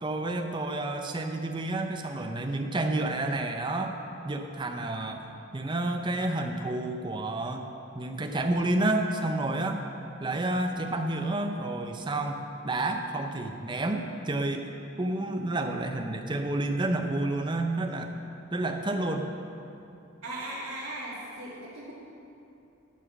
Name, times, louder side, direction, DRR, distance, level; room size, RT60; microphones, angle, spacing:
voice 1, 0.0-4.0 4.2-7.7 7.9-9.8 10.2-14.7 15.0-18.1 18.5-19.3, right 2 dB, 20° right, 4 dB, 0.6 m, -30 dB
voice 2, 20.2-21.9, right 1 dB, 75° right, -10 dB, 2.0 m, -38 dB
11.0 x 6.1 x 6.0 m, 2.8 s
head